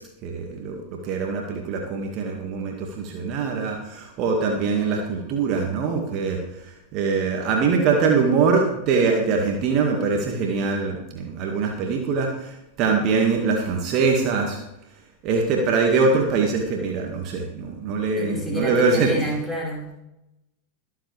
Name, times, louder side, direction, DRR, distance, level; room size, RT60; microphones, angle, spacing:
voice 1, 0.2-14.6 15.2-19.1, right 4 dB, 40° right, 1 dB, 2.0 m, -23 dB
voice 2, 18.1-19.8, equal, 10° left, -4 dB, 5.0 m, -28 dB
22.5 x 7.8 x 3.4 m, 0.91 s
figure-of-eight pair, 90°, 0 cm